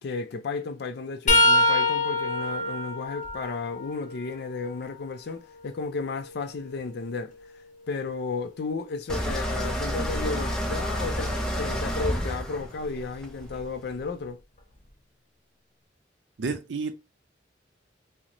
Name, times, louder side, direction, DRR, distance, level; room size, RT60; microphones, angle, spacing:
voice 1, 0.0-7.3 7.9-14.4, left 4 dB, 60° left, 0.4 m, -33 dB
sound 1, 1.3-5.0 5.6-7.5 10.4-10.6 11.8-12.0 13.3-13.4, left 1 dB, 40° left, 0.8 m, -27 dB
sound 2, 9.1-14.0, equal, 5° left, 0.6 m, -30 dB
voice 2, 16.4-16.9, right 4 dB, 75° right, 0.5 m, -30 dB
3.9 x 2.0 x 2.9 m
head